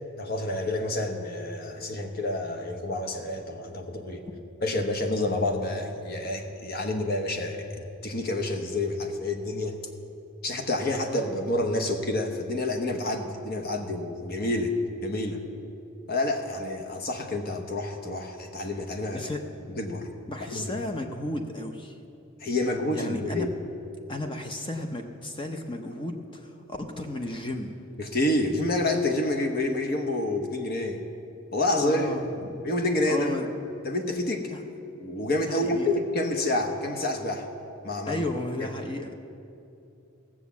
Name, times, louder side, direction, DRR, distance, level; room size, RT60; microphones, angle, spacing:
voice 1, 0.2-4.2 4.6-7.7 8.0-9.8 10.4-14.7 15.0-15.4 16.1-19.3 19.8-20.1 20.5-20.6 22.4-23.5 28.0-31.0 31.5-32.1 32.6-33.3 33.8-34.5 34.9-37.5 37.8-38.2 38.6-38.7, left 1 dB, 45° left, 4 dB, 1.0 m, -28 dB
voice 2, 20.3-22.0 22.9-23.5 24.1-27.8 31.8-32.6 33.1-33.5 34.5-34.6 35.4-36.0 38.1-39.1, left 1 dB, 25° left, 5 dB, 0.7 m, -34 dB
16.0 x 7.3 x 7.0 m, 2.7 s
head